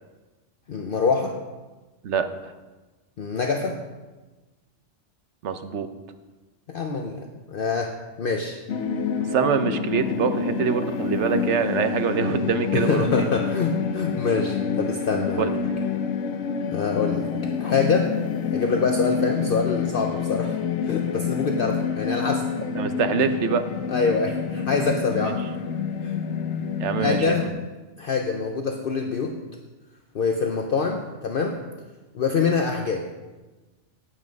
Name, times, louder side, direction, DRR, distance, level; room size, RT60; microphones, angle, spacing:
voice 1, 0.7-1.4 3.2-3.7 6.7-8.5 12.7-15.5 16.7-17.3 17.6-18.1 18.5-20.6 20.8-22.5 23.9-25.4 26.0-26.1 27.0-27.5 28.0-29.4 30.1-31.6 32.1-33.0, left 4 dB, 55° left, 3 dB, 0.9 m, -25 dB
voice 2, 5.4-5.9 9.3-13.3 15.4-15.5 21.8-21.9 22.7-23.6 25.2-25.3 26.8-27.5, right 6 dB, 75° right, 9 dB, 1.1 m, -25 dB
sound 1, 8.7-27.5, left 6 dB, 75° left, 1.0 m, -27 dB
9.8 x 8.6 x 5.3 m, 1.2 s
omnidirectional pair, 1.2 m